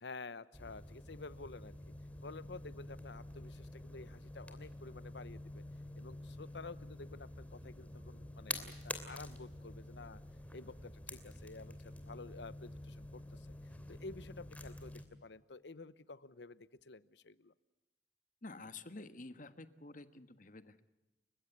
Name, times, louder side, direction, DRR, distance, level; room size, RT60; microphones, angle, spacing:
voice 1, 0.0-1.7 2.2-5.6 6.0-10.2 10.5-13.5 13.9-17.5, left 3 dB, 75° left, 17 dB, 0.9 m, -51 dB
sound 1, 0.5-15.0, left 1 dB, 10° left, 2.8 m, -48 dB
voice 2, 18.4-20.8, left 3 dB, 50° left, 11 dB, 1.5 m, -50 dB
30.0 x 16.0 x 8.0 m, 0.98 s
head